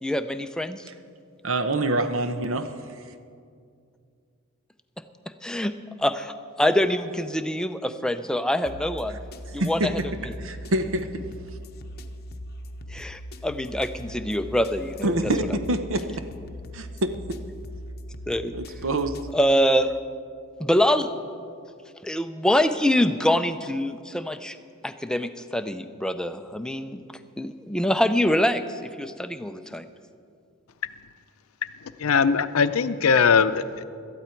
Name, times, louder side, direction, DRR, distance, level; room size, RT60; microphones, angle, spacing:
voice 1, 0.0-0.8 5.4-5.7 6.0-9.2 9.5-10.3 12.9-15.2 18.3-18.5 19.3-20.0 20.6-21.1 22.0-24.6 24.8-27.0 27.4-29.9, equal, 5° left, 9 dB, 0.4 m, -25 dB
voice 2, 1.4-2.7 9.6-10.1 10.4-11.2 15.0-16.3 16.7-17.4 18.5-19.2, right 1 dB, 65° right, 9 dB, 0.8 m, -26 dB
sound 1, 8.7-19.3, equal, 50° left, 0.7 m, -40 dB
voice 3, 32.0-33.8, left 6 dB, 90° left, 12 dB, 0.6 m, -20 dB
17.5 x 13.0 x 4.5 m, 2.3 s
head